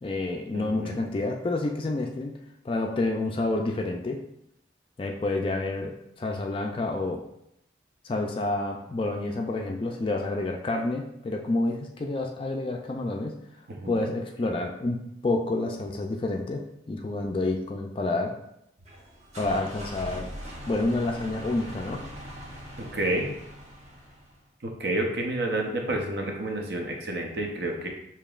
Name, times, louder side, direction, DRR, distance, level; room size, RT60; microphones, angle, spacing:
voice 1, 0.0-2.4 2.6-4.2 5.0-5.9 6.2-7.2 8.0-13.3 13.9-18.3 19.4-20.3 20.7-22.0, left 2 dB, 30° left, 2 dB, 0.3 m, -29 dB
voice 2, 0.5-1.0 13.7-14.1 22.8-23.3 24.6-27.9, right 1 dB, 60° right, 2 dB, 0.7 m, -30 dB
sound 1, 18.8-24.4, equal, 40° right, 1.2 m, -41 dB
6.6 x 2.9 x 2.4 m, 0.80 s
head